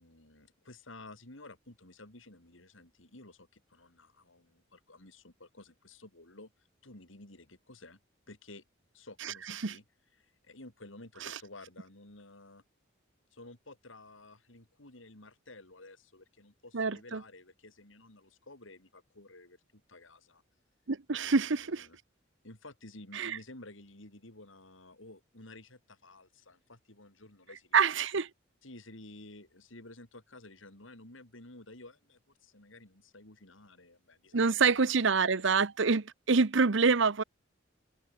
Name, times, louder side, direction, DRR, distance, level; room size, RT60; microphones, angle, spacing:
voice 1, 0.0-8.0 8.3-8.6 8.9-9.8 10.2-12.6 13.3-20.4 21.2-22.0 22.4-27.9 28.6-35.0 35.3-35.5, left 2 dB, 75° left, 4.4 m, -53 dB
voice 2, 16.7-17.2 20.9-21.9 23.1-23.4 27.7-28.3 34.3-37.2, right 5 dB, 65° right, 0.9 m, -26 dB
head